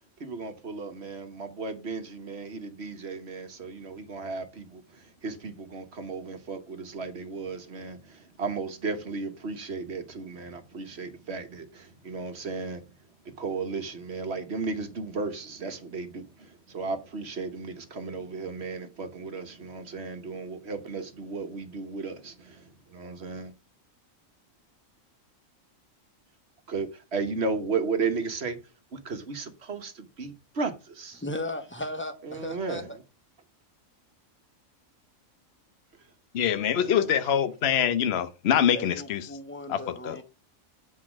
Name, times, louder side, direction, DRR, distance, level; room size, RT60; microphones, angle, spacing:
voice 1, 0.2-12.8 13.4-23.5 26.7-28.6 28.9-31.2 32.3-32.9 36.7-37.1, right 4 dB, 55° right, 1.3 m, -34 dB
voice 2, 31.2-33.0 38.7-40.2, left 1 dB, 10° left, 1.0 m, -36 dB
voice 3, 36.3-39.3 39.7-39.8 40.0-40.2, left 9 dB, 55° left, 1.0 m, -24 dB
8.2 x 4.8 x 6.0 m
omnidirectional pair, 1.4 m